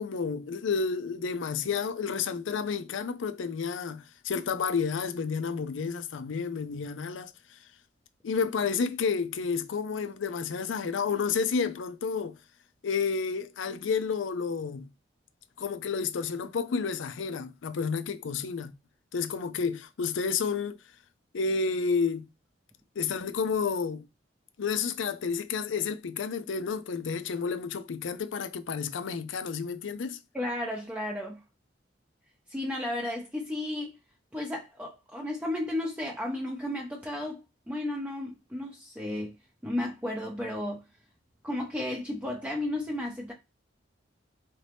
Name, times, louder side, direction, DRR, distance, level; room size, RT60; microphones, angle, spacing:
voice 1, 0.0-7.3 8.2-12.4 12.8-14.9 15.6-18.7 19.1-20.8 21.3-22.3 23.0-24.0 24.6-30.2, left 5 dB, 85° left, 0.5 m, -30 dB
voice 2, 30.3-31.4 32.5-33.9 34.3-37.4 37.7-39.3 39.6-40.8 41.4-43.3, left 1 dB, 10° right, 0.5 m, -33 dB
4.0 x 2.7 x 3.3 m
head